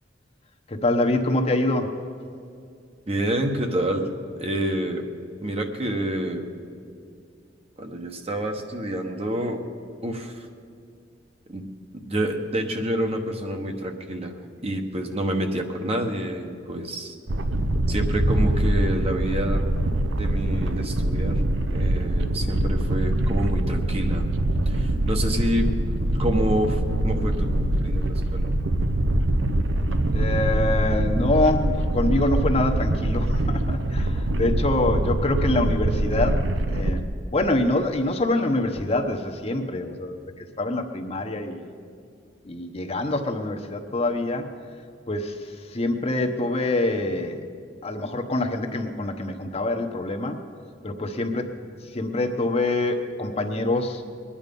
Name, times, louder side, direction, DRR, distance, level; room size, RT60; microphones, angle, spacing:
voice 1, 0.7-1.9 30.1-37.1 37.3-41.7 42.4-44.5 45.1-47.4 47.8-50.4 50.8-51.5 51.8-54.0, left 2 dB, 35° left, 4 dB, 1.0 m, -25 dB
voice 2, 3.1-4.1 4.4-5.0 5.4-6.5 7.8-9.6 10.0-10.5 11.5-11.6 11.9-14.3 14.6-17.2 17.9-19.7 20.1-21.4 21.7-24.2 24.7-25.7 26.2-28.5, right 1 dB, 35° right, 4 dB, 1.2 m, -28 dB
sound 1, 17.3-37.0, right 1 dB, 85° right, 0.8 m, -24 dB
22.5 x 9.9 x 5.3 m, 2.4 s
head